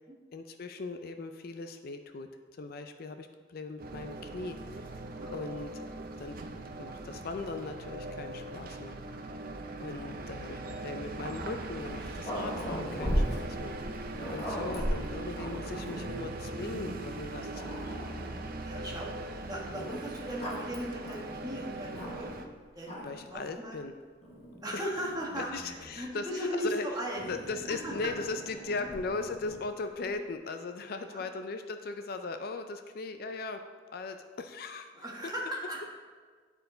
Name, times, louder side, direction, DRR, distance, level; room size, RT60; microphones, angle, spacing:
voice 1, 0.3-2.3 2.6-4.9 5.3-5.8 6.2-6.4 6.8-9.3 9.8-18.1 23.0-23.9 24.7-24.8 25.4-26.9 27.3-33.6 33.9-35.1, left 3 dB, 50° left, 7 dB, 0.4 m, -39 dB
sound 1, 3.8-22.5, right 2 dB, 50° right, 0.5 m, -40 dB
Growling, 11.8-16.4 17.0-17.1 17.5-18.6 19.7-22.5 22.8-23.3 24.2-26.0 27.2-29.7, equal, 35° left, 1.2 m, -38 dB
voice 2, 18.6-19.1 19.4-22.9 23.3-23.8 24.6-27.2 27.7-28.1 28.8-28.9 30.0-30.1 31.0-31.3 34.9-35.9, equal, 20° right, -3 dB, 1.4 m, -37 dB
10.5 x 4.5 x 3.8 m, 1.5 s
head